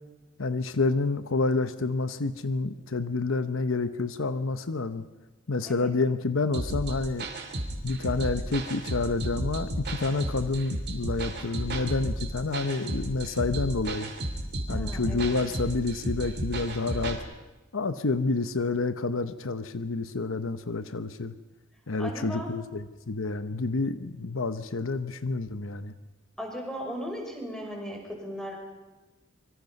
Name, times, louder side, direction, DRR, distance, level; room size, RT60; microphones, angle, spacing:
voice 1, 0.4-5.0 5.5-7.3 7.8-14.1 14.7-17.2 17.7-21.3 21.9-25.9, left 3 dB, 80° left, 11 dB, 0.9 m, -29 dB
sound 1, 6.5-17.2, right 1 dB, 55° right, 3.1 m, -33 dB
voice 2, 14.7-15.3 22.0-22.5 26.4-28.6, equal, 5° left, 0 dB, 5.9 m, -37 dB
25.5 x 23.5 x 5.4 m, 1.1 s
head